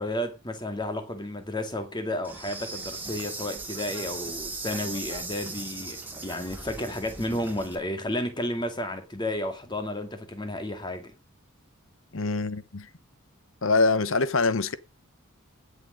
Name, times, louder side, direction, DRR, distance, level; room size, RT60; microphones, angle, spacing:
voice 1, 0.0-11.1, left 1 dB, 20° left, 2.1 m, -32 dB
Insect, 2.2-7.8, right 3 dB, 10° right, 2.3 m, -38 dB
voice 2, 12.1-12.9 13.6-14.8, left 3 dB, 65° left, 0.9 m, -24 dB
16.5 x 6.7 x 5.1 m
head